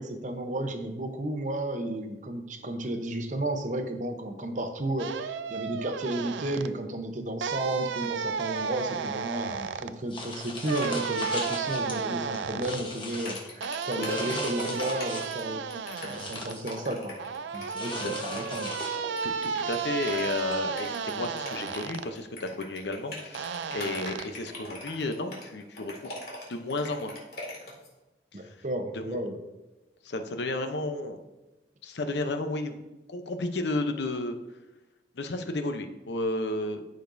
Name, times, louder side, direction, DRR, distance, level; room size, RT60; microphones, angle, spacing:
voice 1, 0.0-15.6 16.0-17.2 17.5-18.8 28.3-29.4, right 1 dB, 45° right, 6 dB, 0.8 m, -33 dB
sound 1, 5.0-6.7 7.4-9.9 10.6-12.8 13.6-16.5 17.2-22.1 23.3-24.2, right 6 dB, 85° right, 0.4 m, -33 dB
sound 2, 10.1-12.0 12.3-13.5 14.1-15.4 15.8-16.8 17.7-19.3, left 2 dB, 25° left, 1.1 m, -38 dB
sound 3, 13.2-27.9, left 2 dB, 55° left, 2.2 m, -42 dB
voice 2, 13.9-14.4 17.9-18.2 19.2-26.1 26.5-27.1 28.3-28.5 28.9-29.2 30.0-31.2 31.8-32.8 33.1-34.3 35.1-36.8, left 2 dB, 70° left, 7 dB, 0.7 m, -32 dB
13.5 x 5.2 x 2.6 m, 1.0 s
head